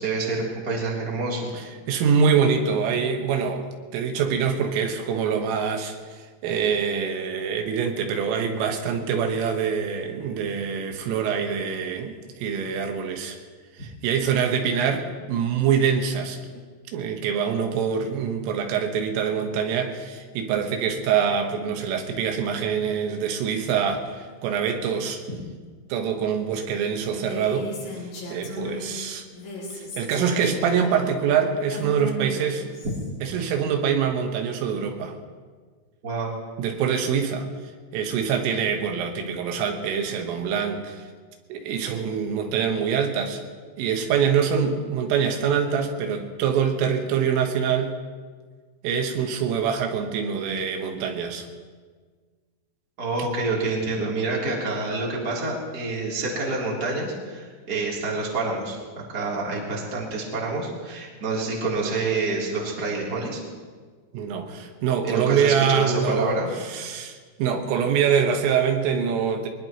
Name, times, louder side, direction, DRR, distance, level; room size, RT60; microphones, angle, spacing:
voice 1, 0.0-1.5 28.5-28.6 36.0-36.3 53.0-58.8 59.1-63.4 65.0-66.5, right 3 dB, 25° right, -4 dB, 2.9 m, -27 dB
voice 2, 1.5-13.4 13.8-16.4 16.9-25.2 25.9-29.2 29.7-32.7 33.2-35.2 36.6-37.5 37.9-41.1 41.5-43.4 43.8-48.0 48.8-51.5 53.2-53.3 64.1-69.5, right 7 dB, 85° right, 4 dB, 3.9 m, -25 dB
Female speech woman speaking, 27.1-28.9 29.3-33.1, equal, 80° left, 7.7 m, -36 dB
23.5 x 20.0 x 3.0 m, 1.5 s
omnidirectional pair, 5.7 m